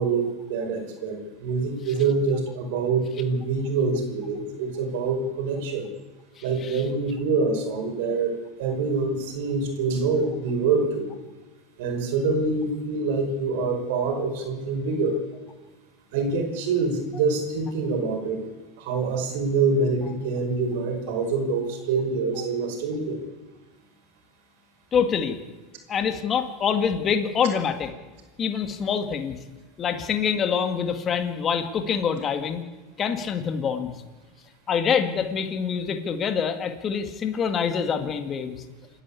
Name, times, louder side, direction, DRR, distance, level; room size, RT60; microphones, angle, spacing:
voice 1, 0.0-5.9 6.4-11.1 11.8-15.2 16.1-18.5 18.8-23.2, right 4 dB, 75° right, 4 dB, 5.3 m, -25 dB
voice 2, 6.4-6.8 24.9-25.4 25.9-27.9 28.4-29.4 29.8-32.6 33.0-34.0 34.7-38.6, left 7 dB, 35° left, 7 dB, 2.0 m, -25 dB
28.0 x 11.0 x 8.5 m, 1.2 s
supercardioid pair, 105°, 0 cm